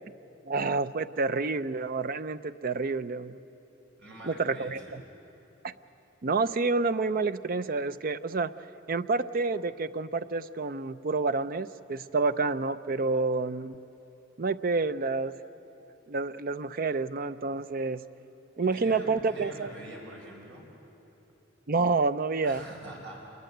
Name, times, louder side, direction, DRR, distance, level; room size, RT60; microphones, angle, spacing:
voice 1, 0.5-3.4 4.2-5.0 5.6-5.7 6.2-8.5 8.9-13.8 14.4-15.3 16.1-18.0 18.6-19.7 21.7-22.6, right 3 dB, 45° right, 13 dB, 0.5 m, -29 dB
voice 2, 4.0-5.0 18.6-20.6 22.4-23.2, right 1 dB, 65° right, -1 dB, 5.0 m, -45 dB
27.0 x 20.5 x 7.9 m, 3.0 s
head